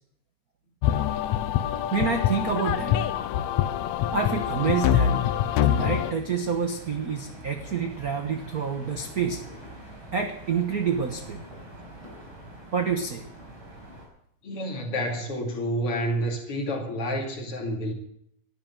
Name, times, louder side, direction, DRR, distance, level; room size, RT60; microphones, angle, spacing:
sound 1, 0.8-6.1, left 10 dB, 75° left, 2.0 m, -25 dB
voice 1, 1.9-3.0 4.1-5.2 5.6-9.4 10.1-11.4 12.7-13.3, right 6 dB, 60° right, 5 dB, 0.9 m, -28 dB
sound 2, 4.4-14.1, right 1 dB, 45° right, 5.3 m, -44 dB
voice 2, 14.4-17.9, equal, 50° left, 1 dB, 3.2 m, -29 dB
12.0 x 10.5 x 9.1 m, 0.74 s
omnidirectional pair, 3.4 m